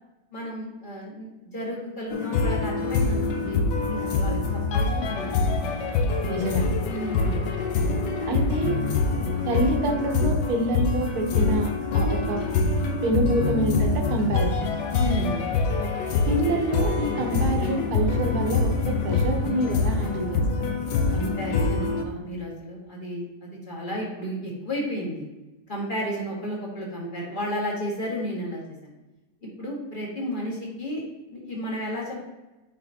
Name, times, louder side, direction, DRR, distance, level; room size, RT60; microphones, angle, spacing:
voice 1, 0.3-3.6 3.9-5.9 6.9-7.5 8.2-8.4 14.9-15.4 21.1-25.2 25.7-28.9 29.4-31.0 31.3-32.2, equal, 30° left, -3 dB, 1.7 m, -33 dB
sound 1, 2.1-22.0, left 3 dB, 90° left, 1.3 m, -25 dB
voice 2, 6.3-6.6 8.3-8.8 9.4-12.4 13.0-14.7 16.3-20.4, right 1 dB, 65° right, 2 dB, 1.5 m, -27 dB
sound 2, 12.8-21.0, right 5 dB, 40° right, 0.4 m, -42 dB
9.7 x 4.2 x 2.8 m, 1.0 s
omnidirectional pair, 1.8 m